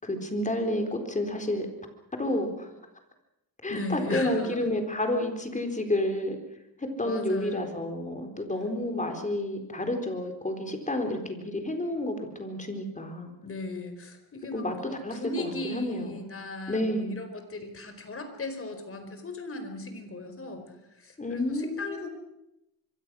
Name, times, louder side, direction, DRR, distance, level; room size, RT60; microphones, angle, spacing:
voice 1, 0.0-1.7 2.1-2.7 3.6-6.4 6.8-13.3 14.5-14.7 15.0-16.2 16.7-17.2 21.2-22.1, left 1 dB, 20° left, 5 dB, 4.2 m, -30 dB
voice 2, 3.7-4.6 7.0-7.8 13.4-20.6 21.0-22.1, left 2 dB, 35° left, 7 dB, 4.5 m, -37 dB
25.5 x 23.0 x 6.3 m, 0.88 s
cardioid pair, 120°, 37 cm